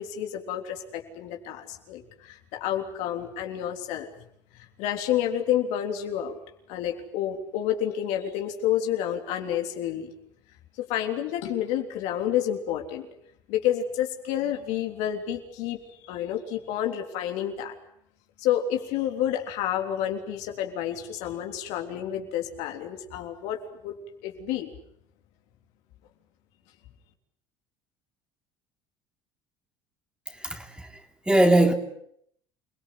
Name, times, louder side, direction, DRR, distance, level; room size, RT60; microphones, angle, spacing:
voice 1, 0.0-4.1 4.5-6.4 6.7-10.1 10.8-13.1 13.5-15.8 16.0-17.7 18.4-24.0 24.2-24.7, left 10 dB, 75° left, 3.5 m, -29 dB
voice 2, 30.3-31.0 31.3-31.7, right 1 dB, 10° right, 3.2 m, -21 dB
28.5 x 17.5 x 9.5 m
supercardioid pair, 90°, 12 cm